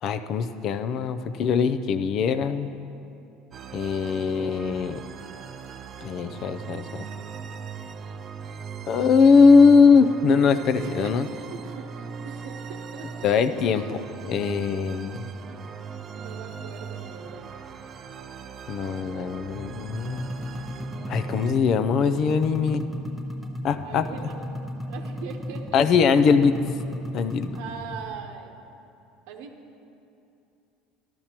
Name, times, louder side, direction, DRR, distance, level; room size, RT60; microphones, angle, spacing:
voice 1, 0.0-2.7 3.7-5.0 6.0-7.1 8.9-11.3 13.2-15.3 18.7-20.3 21.1-22.8 23.6-24.0 25.7-26.5 27.1-27.6, left 5 dB, 40° left, 11 dB, 0.4 m, -21 dB
sound 1, 3.5-21.5, right 5 dB, 30° right, 0.4 m, -39 dB
voice 2, 4.0-4.5 9.2-9.4 10.8-13.4 13.7-14.0 16.2-17.5 23.8-24.6 24.9-25.8 27.5-28.5 29.3-29.5, right 6 dB, 85° right, 3 dB, 0.9 m, -41 dB
sound 2, 19.6-28.1, equal, ahead, 0.8 m, -35 dB
14.0 x 12.0 x 2.9 m, 2.7 s
cardioid pair, 160°, 0 cm